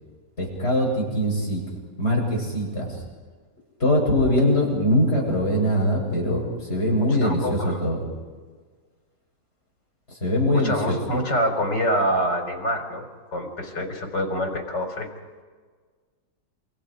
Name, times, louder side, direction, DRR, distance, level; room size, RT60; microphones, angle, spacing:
voice 1, 0.4-1.6 2.0-3.0 3.8-6.4 6.7-8.0 10.2-11.0, left 1 dB, 35° left, -2 dB, 7.8 m, -22 dB
voice 2, 7.0-7.8 10.5-15.1, equal, 80° left, 3 dB, 4.8 m, -26 dB
27.5 x 27.0 x 5.0 m, 1.5 s
omnidirectional pair, 1.9 m